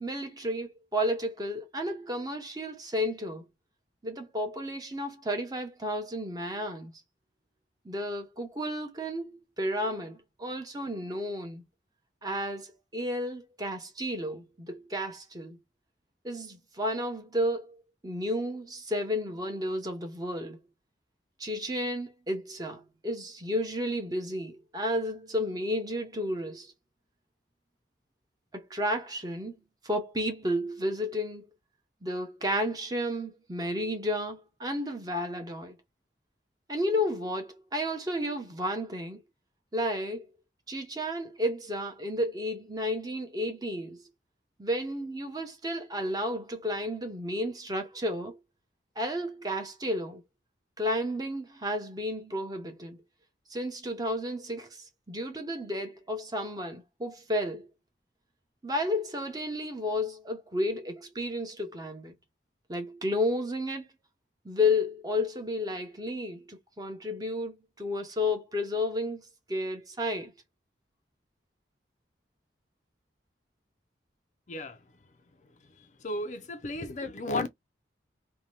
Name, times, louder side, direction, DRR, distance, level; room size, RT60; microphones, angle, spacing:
voice 1, 0.0-3.5 4.0-6.9 7.8-11.6 12.2-15.6 16.2-20.6 21.4-26.7 28.5-29.6 29.8-31.5 32.0-35.8 36.7-39.2 39.7-40.3 40.7-44.0 44.6-48.4 49.0-50.2 50.8-53.0 53.5-54.8 55.1-57.7 58.6-62.1 62.7-63.9 64.4-70.3, left 1 dB, 20° right, 0.7 m, -32 dB
voice 2, 76.0-77.5, left 2 dB, 40° left, 0.4 m, -33 dB
2.7 x 2.2 x 3.1 m
head